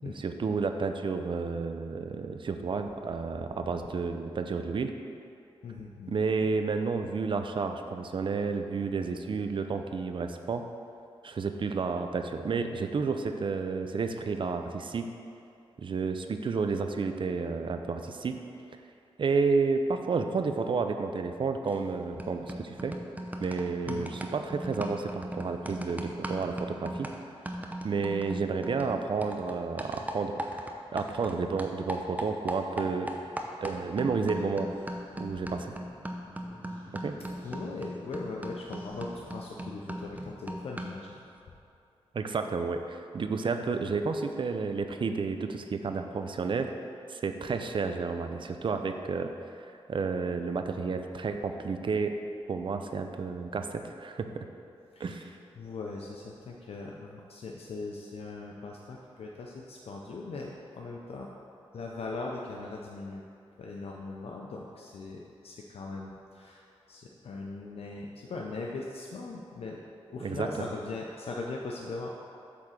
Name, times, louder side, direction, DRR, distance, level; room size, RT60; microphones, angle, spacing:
voice 1, 0.1-4.9 6.1-10.7 11.2-15.1 15.8-18.4 19.2-22.9 23.4-27.1 27.8-33.1 33.6-34.8 35.2-35.7 36.9-37.2 42.1-46.7 47.1-49.3 49.6-52.2 52.5-54.5 55.0-55.3 70.2-70.7, right 4 dB, 55° right, 7 dB, 0.5 m, -31 dB
voice 2, 5.6-6.5 23.8-24.1 37.4-41.2 55.0-61.3 61.7-63.2 63.6-69.8 70.1-72.1, left 3 dB, 70° left, -1 dB, 0.6 m, -40 dB
sound 1, 21.7-21.9 22.2-31.3 31.6-41.1, right 1 dB, 15° right, 0.7 m, -39 dB
sound 2, 33.3-41.3, equal, 20° left, 1.5 m, -54 dB
8.3 x 3.7 x 6.5 m, 2.5 s
cardioid pair, 80°, 10 cm